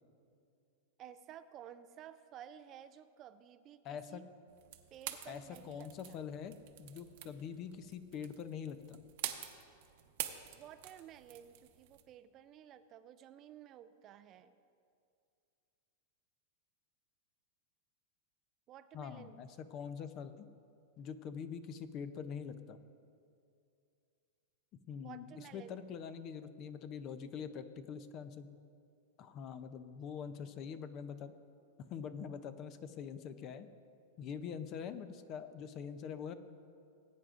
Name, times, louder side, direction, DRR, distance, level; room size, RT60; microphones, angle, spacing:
voice 1, 1.0-4.2 4.9-6.2 10.5-14.6 18.7-19.4 25.0-25.8, right 10 dB, 30° right, 12 dB, 0.3 m, -54 dB
voice 2, 3.8-4.2 5.3-9.0 18.9-20.5 21.0-22.8 24.9-28.5 29.2-31.3 31.9-33.7 34.2-36.3, left 7 dB, 35° left, 11 dB, 0.5 m, -44 dB
sound 1, 4.5-12.0, right 12 dB, 60° right, 0.8 m, -47 dB
19.5 x 9.1 x 2.5 m, 2.4 s
supercardioid pair, 150°, 0 cm